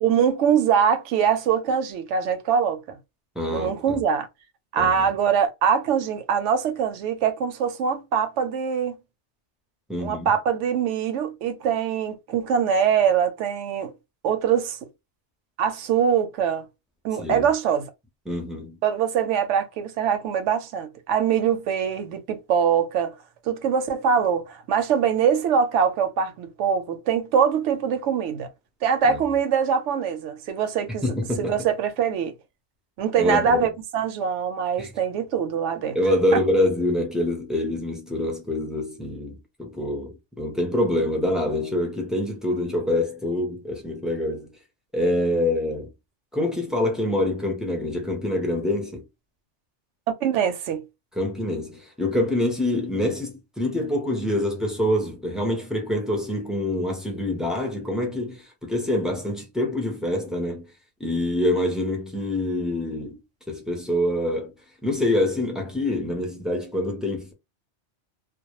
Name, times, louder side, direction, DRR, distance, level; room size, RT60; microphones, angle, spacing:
voice 1, 0.0-3.0 3.5-4.3 4.7-9.0 10.0-13.9 14.2-14.9 15.6-16.7 17.0-17.9 18.8-23.1 23.5-28.5 28.8-32.3 33.0-36.0 36.3-36.4 50.2-50.9, right 7 dB, 85° right, 0.9 m, -23 dB
voice 2, 3.4-4.0 4.8-5.1 9.9-10.3 17.2-17.5 18.3-18.8 29.0-29.2 30.9-31.6 33.2-33.7 34.8-34.9 35.9-44.5 44.9-45.9 46.3-49.0 51.2-60.7 61.0-63.2 63.5-64.5 64.8-67.3, left 1 dB, ahead, 0.4 m, -25 dB
2.2 x 2.0 x 2.9 m
omnidirectional pair, 1.2 m